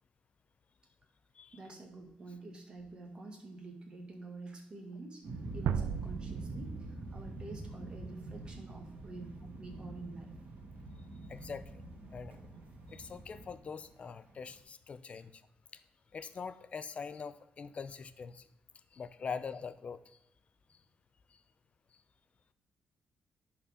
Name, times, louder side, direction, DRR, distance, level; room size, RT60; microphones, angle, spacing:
voice 1, 1.5-5.2 5.5-10.3, right 2 dB, 30° right, 1 dB, 1.8 m, -48 dB
sound 1, 5.2-14.6, right 2 dB, 60° right, 2.2 m, -46 dB
sound 2, 5.7-8.6, right 8 dB, 80° right, 0.4 m, -38 dB
voice 2, 11.3-11.8 12.1-12.4 12.9-15.4 15.7-15.8 16.1-18.5 18.9-20.2 20.7-20.8 21.3-21.4, left 5 dB, 40° left, 12 dB, 0.5 m, -43 dB
10.5 x 4.3 x 3.6 m, 0.86 s
cardioid pair, 120°, 3 cm